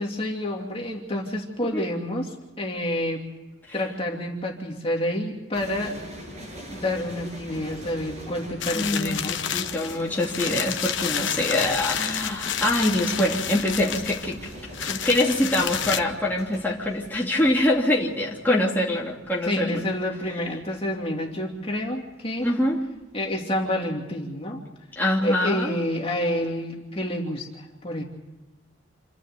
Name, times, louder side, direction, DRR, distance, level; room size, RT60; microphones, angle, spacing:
voice 1, 0.0-3.2 3.7-6.0 6.7-9.4 19.4-22.5 23.1-24.6 25.2-28.0, left 1 dB, 30° left, 0 dB, 2.8 m, -28 dB
sound 1, 5.5-22.8 23.0-23.4, equal, 35° right, 8.0 m, -42 dB
sound 2, 8.6-16.0, left 9 dB, 70° left, 1.1 m, -30 dB
voice 2, 8.7-14.4 14.8-19.9 22.4-22.8 25.0-25.8, left 1 dB, 10° left, -4 dB, 2.9 m, -24 dB
28.5 x 11.5 x 9.2 m, 1.1 s
head